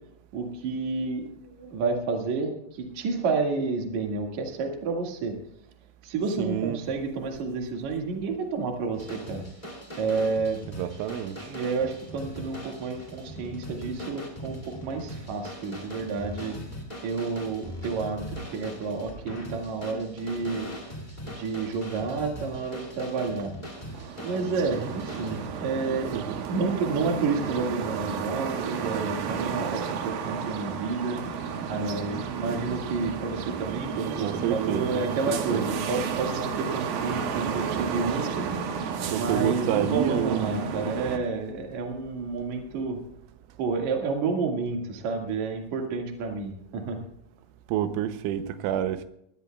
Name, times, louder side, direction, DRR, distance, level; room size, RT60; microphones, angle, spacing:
voice 1, 0.3-5.3 6.0-9.4 10.0-10.6 11.5-16.6 17.0-18.2 18.5-20.7 21.2-23.5 24.2-31.2 31.7-38.5 39.1-43.0 43.6-47.0, right 4 dB, 50° right, 2.5 m, -30 dB
voice 2, 6.4-6.8 10.8-11.6 23.9-24.1 26.1-26.3 34.2-34.9 35.3-35.7 39.1-40.4 47.7-49.1, right 11 dB, 85° right, 3.2 m, -28 dB
sound 1, 8.9-25.5, equal, 30° left, 0.7 m, -41 dB
sound 2, 23.8-41.2, right 6 dB, 70° right, 2.5 m, -32 dB
22.0 x 16.5 x 2.3 m
omnidirectional pair, 5.5 m